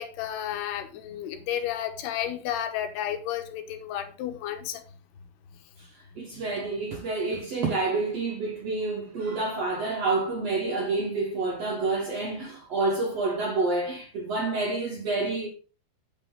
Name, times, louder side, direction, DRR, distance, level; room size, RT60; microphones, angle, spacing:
voice 1, 0.0-4.8, left 10 dB, 85° left, 3.1 m, -32 dB
voice 2, 5.8-15.5, right 3 dB, 65° right, 1.6 m, -28 dB
8.7 x 7.7 x 3.9 m
omnidirectional pair, 4.5 m